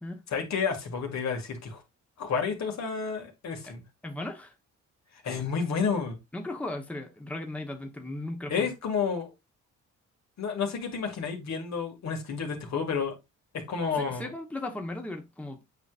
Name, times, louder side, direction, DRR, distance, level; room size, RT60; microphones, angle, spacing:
voice 1, 0.3-1.8 2.2-3.8 5.2-6.2 8.5-9.3 10.4-13.1 13.7-14.3, left 5 dB, 65° left, 2.2 m, -30 dB
voice 2, 4.0-4.5 6.3-8.7 13.9-15.6, left 2 dB, 5° left, 1.1 m, -37 dB
8.1 x 5.0 x 2.5 m
cardioid pair, 90°, 30 cm